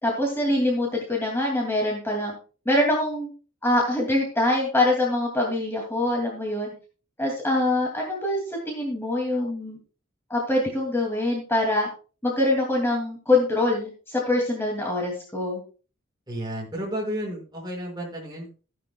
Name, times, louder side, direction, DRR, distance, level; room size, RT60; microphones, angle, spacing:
voice 1, 0.0-2.4 2.6-3.3 3.6-6.7 7.2-9.8 10.3-11.9 12.2-15.6, left 1 dB, 10° left, -2 dB, 2.6 m, -24 dB
voice 2, 16.3-18.5, equal, 20° right, -2 dB, 5.8 m, -32 dB
15.5 x 10.5 x 2.3 m, 0.37 s
head